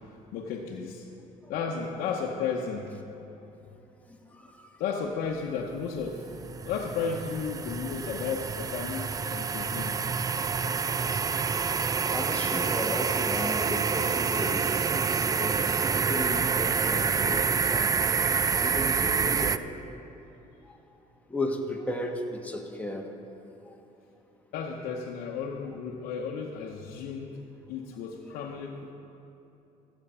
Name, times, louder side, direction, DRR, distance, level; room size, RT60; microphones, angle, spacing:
voice 1, 0.3-1.1 1.5-3.0 4.8-10.0 24.5-27.4 27.7-28.9, left 6 dB, 85° left, -2 dB, 0.9 m, -33 dB
voice 2, 4.1-4.7 12.1-14.7 15.1-17.9 18.6-19.8 20.6-20.8 21.3-23.1 23.6-23.7, left 1 dB, 10° left, 1 dB, 1.4 m, -35 dB
sound 1, 5.7-19.6, right 5 dB, 25° right, 0.3 m, -27 dB
15.0 x 7.9 x 5.6 m, 3.0 s
cardioid pair, 105°, 15 cm